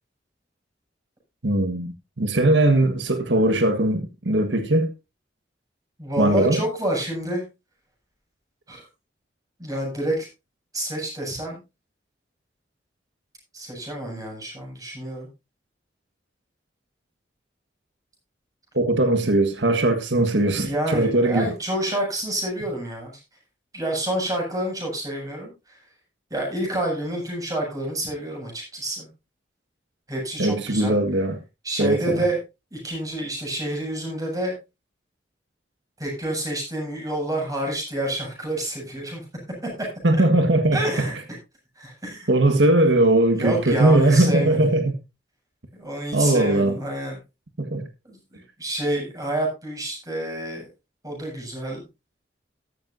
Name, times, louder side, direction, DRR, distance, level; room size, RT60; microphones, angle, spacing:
voice 1, 1.4-4.9 6.2-6.6 18.7-21.5 30.4-31.4 31.8-32.2 40.0-40.8 42.3-44.9 46.1-46.7 47.6-47.8, right 1 dB, 90° right, 1.6 m, -20 dB
voice 2, 6.0-7.4 8.7-8.9 9.6-10.3 10.7-11.6 13.5-15.3 20.5-23.2 23.7-25.8 26.3-29.1 30.1-30.9 31.6-32.4 32.7-34.5 36.0-39.2 40.7-41.2 41.8-42.3 43.3-44.7 45.7-47.2 48.0-50.7 51.0-51.8, right 1 dB, 20° right, 7.6 m, -28 dB
14.0 x 12.5 x 2.7 m
head